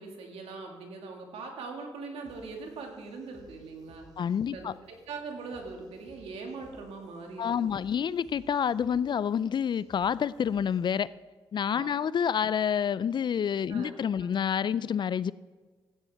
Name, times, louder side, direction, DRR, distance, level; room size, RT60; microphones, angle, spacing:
voice 1, 0.0-4.1 4.5-7.7 11.8-11.9 13.7-13.9, right 4 dB, 80° right, 2 dB, 2.0 m, -41 dB
sound 1, 2.2-11.2, right 2 dB, 40° right, 2.5 m, -59 dB
voice 2, 4.2-4.7 7.4-11.1 11.5-15.3, left 8 dB, 50° left, 19 dB, 0.3 m, -28 dB
15.0 x 8.8 x 3.5 m, 1.4 s
cardioid pair, 65°, 10 cm